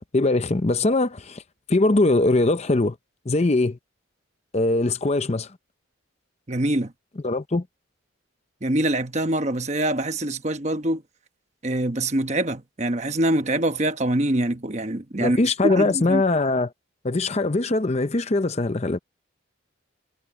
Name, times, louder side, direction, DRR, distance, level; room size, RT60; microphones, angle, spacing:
voice 1, 0.1-1.4 1.7-3.0 3.3-3.8 4.5-5.5 7.2-7.6 15.2-16.7 17.0-19.0, left 2 dB, 30° left, 0.6 m, -21 dB
voice 2, 6.5-6.9 8.6-11.0 11.6-15.4 15.6-16.2, right 1 dB, 35° right, 1.1 m, -24 dB
head